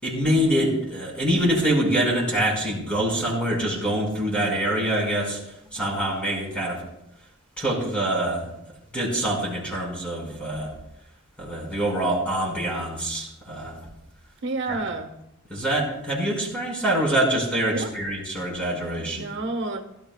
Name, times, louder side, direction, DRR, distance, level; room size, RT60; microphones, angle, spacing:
voice 1, 0.0-5.4 5.7-6.8 7.6-8.5 8.9-10.7 11.4-13.8 14.7-14.8 15.5-19.3, right 1 dB, 5° left, -2 dB, 5.1 m, -25 dB
voice 2, 14.4-15.1 17.7-17.9 19.0-19.8, right 3 dB, 60° right, 5 dB, 1.3 m, -30 dB
22.5 x 13.0 x 2.3 m, 0.82 s
head